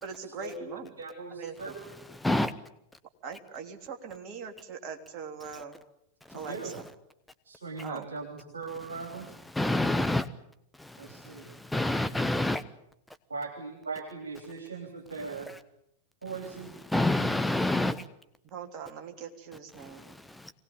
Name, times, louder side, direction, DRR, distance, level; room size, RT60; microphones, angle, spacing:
voice 1, 0.0-0.9 1.3-1.7 3.2-5.7 6.3-6.8 7.8-8.1 18.4-20.0, right 6 dB, 35° right, 3 dB, 3.3 m, -41 dB
voice 2, 1.0-1.9 6.3-6.7 7.5-9.3 11.0-11.5 13.3-15.5 16.2-16.7, right 4 dB, 70° right, 3 dB, 3.2 m, -39 dB
voice 3, 2.2-2.5 8.9-10.3 10.8-12.6 15.2-15.6 16.4-18.0 19.9-20.5, left 1 dB, 5° left, 12 dB, 0.9 m, -29 dB
24.0 x 18.5 x 9.2 m, 0.78 s
figure-of-eight pair, 90°, 0 cm